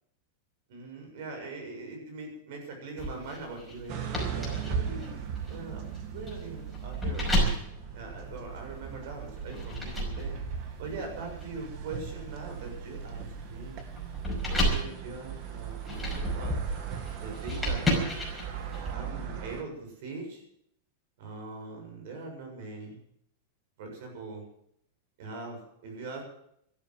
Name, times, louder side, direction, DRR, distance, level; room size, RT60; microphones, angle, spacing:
voice 1, 0.7-4.0 4.3-5.2 5.5-7.6 7.9-10.4 10.8-13.8 14.2-16.6 17.2-18.1 18.9-20.4 21.2-23.0 23.8-24.4 25.2-26.2, right 3 dB, 55° right, 3 dB, 7.3 m, -41 dB
sound 1, 3.0-8.8 9.4-18.9, equal, ahead, 5.4 m, -33 dB
sound 2, 3.9-19.6, right 8 dB, 40° right, 2.2 m, -40 dB
14.5 x 12.0 x 7.9 m, 0.73 s
supercardioid pair, 165°, 0 cm